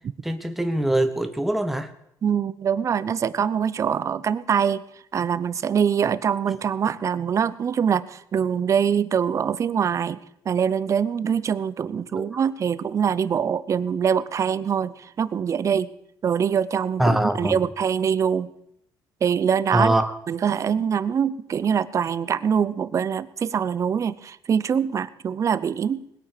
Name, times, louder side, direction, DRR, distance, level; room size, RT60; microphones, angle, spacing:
voice 1, 0.2-1.9 12.2-12.3 17.0-17.6 19.7-20.1, right 1 dB, ahead, 8 dB, 1.0 m, -23 dB
voice 2, 2.2-4.8 5.1-10.2 10.5-15.9 16.2-18.5 19.2-19.9 20.3-26.0, right 7 dB, 40° right, 17 dB, 0.7 m, -24 dB
20.0 x 8.8 x 6.6 m, 0.77 s
cardioid pair, 125°, 8 cm